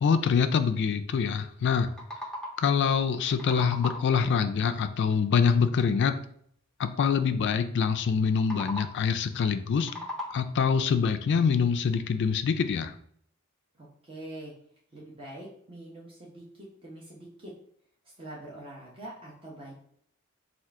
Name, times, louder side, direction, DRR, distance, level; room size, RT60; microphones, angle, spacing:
voice 1, 0.0-1.9 2.6-6.2 6.8-9.9 10.3-12.9, left 6 dB, 55° left, 10 dB, 0.3 m, -25 dB
sound 1, 1.9-2.8 3.1-4.3 8.3-9.1 9.6-10.7, left 1 dB, 5° left, 0.5 m, -39 dB
voice 2, 13.8-14.5 14.9-17.5 18.2-19.7, right 1 dB, 25° right, -5 dB, 0.8 m, -44 dB
3.6 x 2.4 x 4.5 m, 0.64 s
head